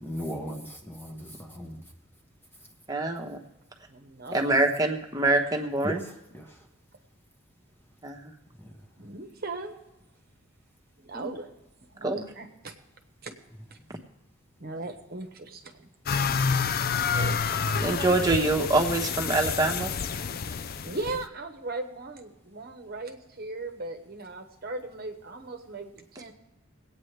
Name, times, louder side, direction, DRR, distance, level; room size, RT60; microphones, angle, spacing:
voice 1, 0.0-1.8 5.8-6.6 8.6-8.7, equal, 10° left, 2 dB, 1.0 m, -37 dB
voice 2, 2.9-3.4 4.3-6.0 8.0-8.3 11.1-11.3 12.0-12.2 17.8-19.9, right 2 dB, 15° right, 2 dB, 1.1 m, -25 dB
voice 3, 3.9-4.5 9.0-9.8 11.0-11.5 11.9-12.7 13.2-13.3 14.6-15.9 17.1-17.4 20.5-26.3, right 2 dB, 45° right, 4 dB, 1.0 m, -38 dB
sound 1, 16.1-21.2, left 6 dB, 45° left, 0.4 m, -28 dB
22.5 x 8.9 x 3.3 m, 0.97 s
head